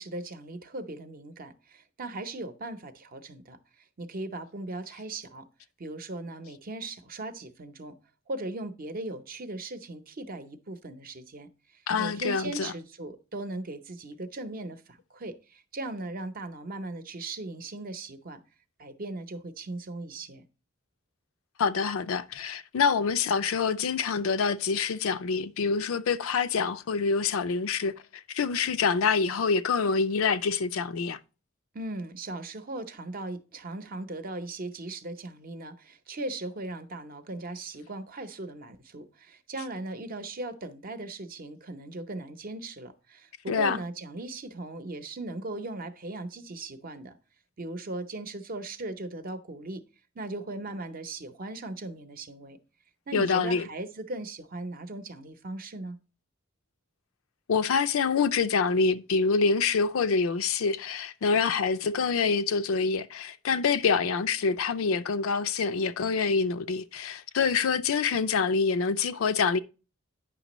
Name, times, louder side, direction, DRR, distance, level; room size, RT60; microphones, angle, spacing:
voice 1, 0.0-3.6 4.0-5.5 5.8-7.9 8.3-18.4 18.8-20.4 31.7-47.2 47.6-49.8 50.1-52.6 53.1-56.0, right 2 dB, 45° right, 0.7 m, -38 dB
voice 2, 11.9-12.7 21.6-31.2 43.5-43.8 53.1-53.7 57.5-69.6, left 5 dB, 75° left, 0.4 m, -26 dB
9.1 x 5.9 x 3.0 m
head